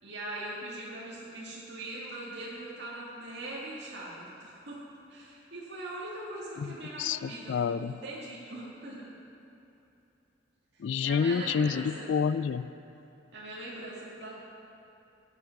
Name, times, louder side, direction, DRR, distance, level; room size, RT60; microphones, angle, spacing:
voice 1, 0.0-4.8 5.1-9.1 10.7-12.1 13.3-14.3, right 1 dB, 65° right, -7 dB, 2.2 m, -41 dB
voice 2, 7.0-7.9 10.8-12.7, left 6 dB, 70° left, 15 dB, 0.3 m, -28 dB
15.5 x 9.0 x 5.9 m, 2.8 s
head